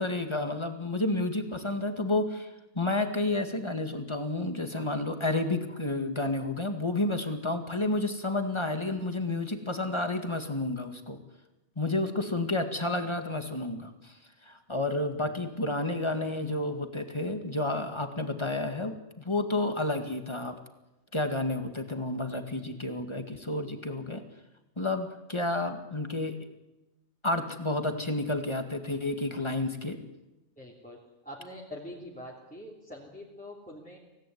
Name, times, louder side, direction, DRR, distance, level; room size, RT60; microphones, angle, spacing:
voice 1, 0.0-2.5 2.8-11.2 11.8-14.1 14.5-20.5 21.1-24.2 24.8-26.4 27.2-30.0, left 2 dB, 20° left, 6 dB, 2.0 m, -30 dB
voice 2, 30.6-31.0 31.2-34.0, left 1 dB, 5° left, -4 dB, 3.2 m, -44 dB
24.5 x 18.0 x 9.5 m, 1.0 s
omnidirectional pair, 1.3 m